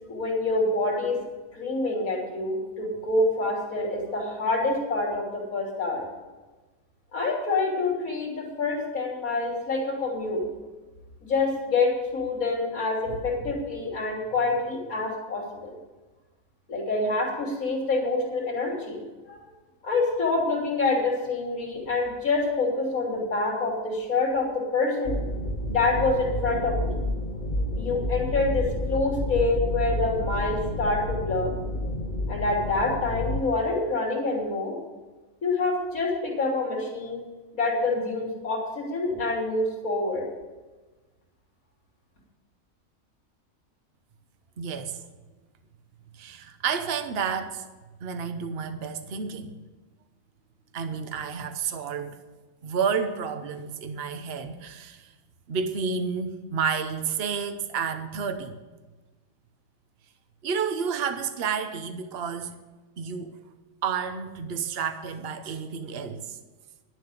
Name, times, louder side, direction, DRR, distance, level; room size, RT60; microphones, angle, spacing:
voice 1, 0.1-1.2 1.5-6.1 7.1-10.4 11.2-15.8 16.7-19.0 19.3-19.4 19.8-25.2 25.7-27.0 27.8-31.5 32.3-34.7 35.4-37.2 37.5-40.3, left 3 dB, 85° left, -3 dB, 3.5 m, -26 dB
sound 1, 25.0-33.4, left 1 dB, 40° left, 1.0 m, -30 dB
voice 2, 44.6-45.0 46.1-47.6 48.0-49.5 50.7-52.2 52.6-55.1 55.5-58.5 60.4-62.5 63.0-63.4 63.8-66.4, right 6 dB, 50° right, 8 dB, 1.1 m, -30 dB
11.5 x 7.8 x 8.2 m, 1.2 s
omnidirectional pair, 1.4 m